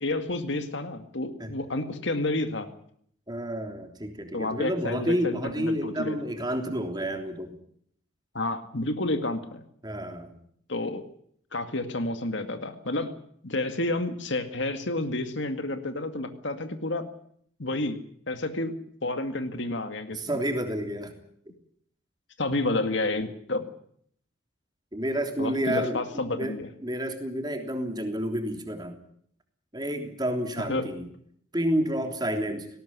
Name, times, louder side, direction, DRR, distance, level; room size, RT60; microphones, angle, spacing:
voice 1, 0.0-2.7 4.3-6.2 8.3-9.6 10.7-11.0 11.5-13.1 13.4-17.1 17.6-18.0 18.3-18.7 19.0-20.2 22.4-23.6 25.4-26.7 30.6-30.9, left 2 dB, 65° left, 8 dB, 2.1 m, -30 dB
voice 2, 3.3-7.6 9.8-10.3 20.1-21.1 24.9-26.5 26.8-28.9 29.7-31.1 31.5-32.7, equal, 20° right, 5 dB, 3.3 m, -30 dB
18.5 x 18.5 x 9.9 m, 0.64 s
head